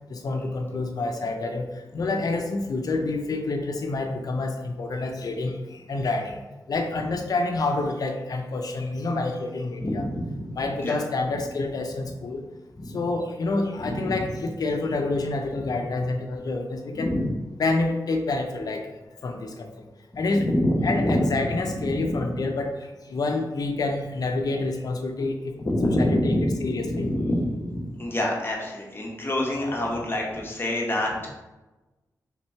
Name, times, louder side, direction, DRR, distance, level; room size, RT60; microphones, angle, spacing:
voice 1, 0.1-1.7 1.9-6.4 6.7-10.1 10.5-12.5 12.9-17.1 17.6-18.9 19.2-19.7 20.2-20.5 20.8-22.7 23.1-25.6 25.8-27.1, left 3 dB, 60° left, 4 dB, 0.4 m, -28 dB
voice 2, 9.8-10.3 10.8-11.0 12.8-12.9 13.9-14.0 17.0-17.3 20.4-21.2 22.1-22.2 25.6-26.5 26.9-27.7 28.0-31.3, left 1 dB, 30° left, -2 dB, 0.9 m, -26 dB
3.5 x 2.9 x 4.3 m, 1.1 s
wide cardioid pair, 95°, 7 cm